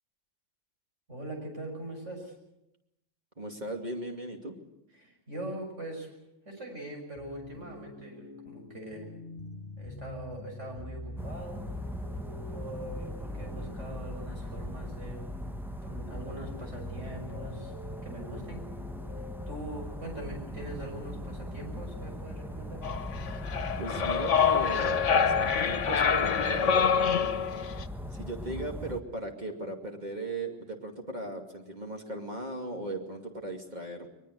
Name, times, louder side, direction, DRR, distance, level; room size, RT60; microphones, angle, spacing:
voice 1, 1.1-2.4 5.0-6.1 6.5-9.1 9.8-11.6 12.5-15.3 15.8-17.7 18.0-18.6 19.5-22.8, right 1 dB, 80° right, 2 dB, 6.9 m, -42 dB
voice 2, 3.4-4.6 23.8-26.9 28.1-34.1, right 2 dB, 40° right, 2 dB, 2.7 m, -37 dB
sound 1, 7.2-19.6, left 2 dB, 20° left, 3.5 m, -44 dB
sound 2, 11.2-29.0, equal, ahead, 0.8 m, -40 dB
sound 3, 22.8-27.8, left 7 dB, 80° left, 1.4 m, -26 dB
22.0 x 21.5 x 8.1 m, 0.86 s
omnidirectional pair, 1.2 m